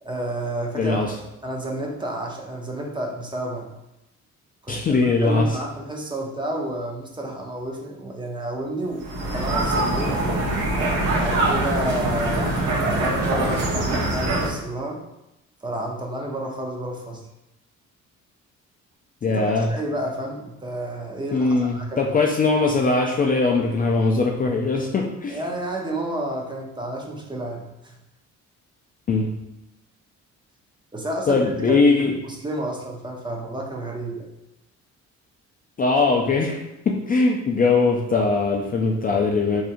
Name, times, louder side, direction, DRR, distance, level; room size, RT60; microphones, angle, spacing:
voice 1, 0.0-1.0 1.4-3.7 4.6-10.2 11.2-15.0 15.6-17.2 19.3-22.1 25.3-28.0 30.9-34.3, right 1 dB, 15° right, 0 dB, 0.6 m, -30 dB
voice 2, 0.8-1.2 4.7-5.5 19.2-19.7 21.3-25.4 29.1-29.3 31.3-32.2 35.8-36.6 36.9-39.6, left 3 dB, 30° left, 0 dB, 0.4 m, -21 dB
sound 1, 9.0-14.5, right 2 dB, 90° right, 0.8 m, -23 dB
3.4 x 2.7 x 2.5 m, 0.90 s
cardioid pair, 90°, 30 cm